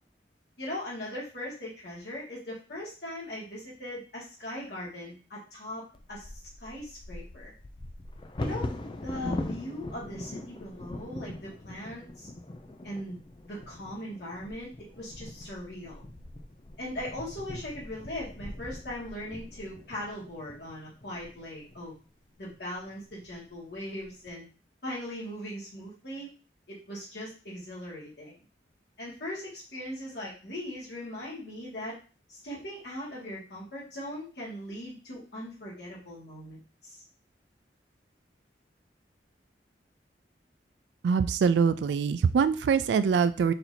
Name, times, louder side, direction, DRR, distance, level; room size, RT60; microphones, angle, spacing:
voice 1, 0.6-5.8 6.1-6.3 6.6-7.5 8.4-12.3 12.8-13.2 13.5-14.7 15.0-16.1 16.8-21.9 22.4-24.5 24.8-26.3 26.7-28.4 29.0-32.0 32.3-37.0, left 1 dB, 70° left, -6 dB, 1.9 m, -39 dB
Bird vocalization bird call bird song / Wind / Thunder, 5.9-21.8 22.5-22.6 22.9-23.3 23.8-24.3, left 2 dB, 30° left, 0.4 m, -41 dB
voice 2, 41.0-43.5, right 6 dB, 80° right, 12 dB, 0.3 m, -24 dB
4.3 x 2.7 x 4.1 m, 0.36 s
head